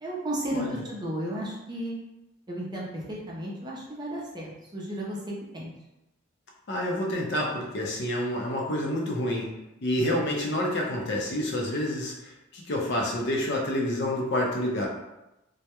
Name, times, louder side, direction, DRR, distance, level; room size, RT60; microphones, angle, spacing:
voice 1, 0.0-1.9 2.5-5.7, right 1 dB, 20° right, -4 dB, 0.5 m, -34 dB
voice 2, 6.7-9.5 9.8-14.9, left 1 dB, 60° left, -1 dB, 0.5 m, -28 dB
2.2 x 2.1 x 2.8 m, 0.92 s
head